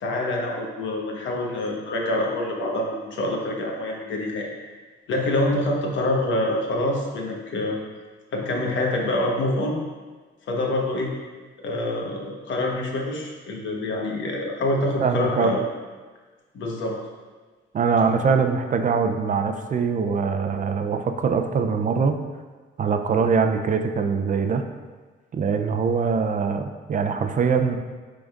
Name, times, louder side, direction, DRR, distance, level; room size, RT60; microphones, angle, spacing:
voice 1, 0.0-4.5 5.1-7.8 8.3-9.8 10.5-11.1 11.6-15.6 16.5-17.0, left 1 dB, 70° left, 0 dB, 1.2 m, -26 dB
voice 2, 15.0-15.5 17.7-22.2 22.8-24.6 25.3-27.8, right 5 dB, 40° right, 6 dB, 0.5 m, -23 dB
10.0 x 3.8 x 2.4 m, 1.4 s
cardioid pair, 90°, 20 cm